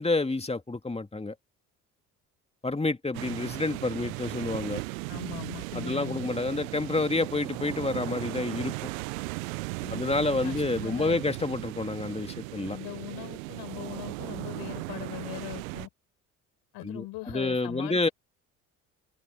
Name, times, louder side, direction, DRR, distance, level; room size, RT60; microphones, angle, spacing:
voice 1, 0.0-1.3 2.6-4.8 5.7-8.9 9.9-12.8 16.8-18.1, left 3 dB, 15° left, 2.5 m, -29 dB
sound 1, 3.1-15.9, right 24 dB, 75° right, 0.8 m, -37 dB
voice 2, 5.1-6.3 9.8-11.5 12.7-15.9 16.7-18.1, left 20 dB, 70° left, 6.5 m, -41 dB
hypercardioid pair, 55°, 41 cm